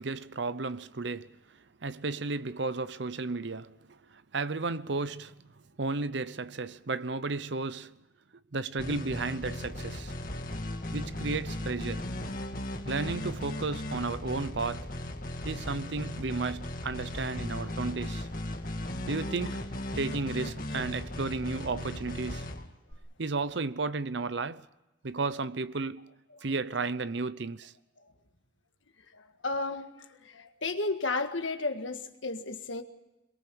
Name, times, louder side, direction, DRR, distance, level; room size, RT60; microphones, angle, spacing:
voice 1, 0.0-1.3 1.8-5.5 5.8-8.0 8.5-10.1 10.9-12.1 12.9-14.9 15.4-18.3 19.1-19.6 20.0-22.5 23.2-24.7 25.0-26.1 26.4-27.7, right 3 dB, 70° right, 0.8 m, -33 dB
sound 1, 8.8-22.9, left 1 dB, 45° left, 2.0 m, -37 dB
voice 2, 29.1-32.8, left 3 dB, 80° left, 1.8 m, -33 dB
23.5 x 22.0 x 7.0 m
head